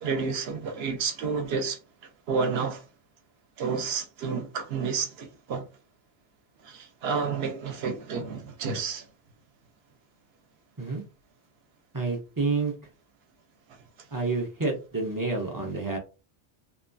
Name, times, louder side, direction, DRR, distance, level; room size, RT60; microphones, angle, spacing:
voice 1, 0.0-1.8 2.3-2.8 3.6-5.7 6.6-9.1 13.7-13.8, right 5 dB, 70° right, 0.8 m, -30 dB
voice 2, 11.9-12.7 14.1-16.0, right 3 dB, 30° right, 0.3 m, -29 dB
2.9 x 2.2 x 2.5 m
omnidirectional pair, 1.2 m